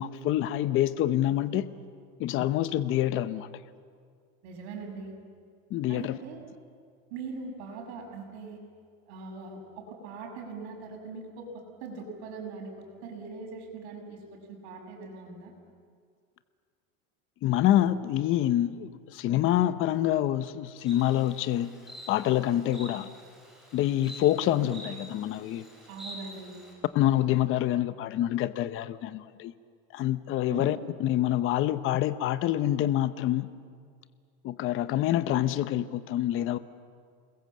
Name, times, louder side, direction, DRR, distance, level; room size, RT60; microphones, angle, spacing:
voice 1, 0.0-1.7 2.2-3.5 5.7-6.2 17.4-21.7 22.1-23.1 23.7-25.6 26.9-29.5 29.9-33.5 34.4-36.6, left 13 dB, 40° left, 13 dB, 0.8 m, -26 dB
voice 2, 4.4-5.1 5.9-6.4 7.1-8.6 9.1-12.7 13.0-15.5 25.9-26.6 30.5-30.8, right 4 dB, 80° right, 2 dB, 6.7 m, -41 dB
Insect, 20.9-26.7, equal, ahead, 6.0 m, -47 dB
28.5 x 21.0 x 7.6 m, 2.1 s
cardioid pair, 150°, 32 cm